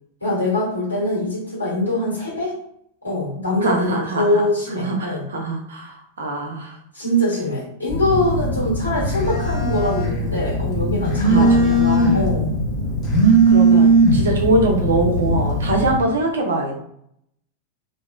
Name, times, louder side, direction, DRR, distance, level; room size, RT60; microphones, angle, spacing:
voice 1, 0.2-2.5 3.0-5.2 6.9-11.8 12.1-12.5, left 1 dB, 85° left, -6 dB, 1.4 m, -23 dB
voice 2, 3.6-4.4 4.8-6.8 11.2-12.2 13.2-16.8, right 2 dB, 65° right, 2 dB, 0.6 m, -23 dB
Telephone, 7.9-16.0, right 2 dB, 30° left, 1.2 m, -18 dB
3.0 x 2.4 x 2.3 m, 0.72 s
figure-of-eight pair, 90°, 0 cm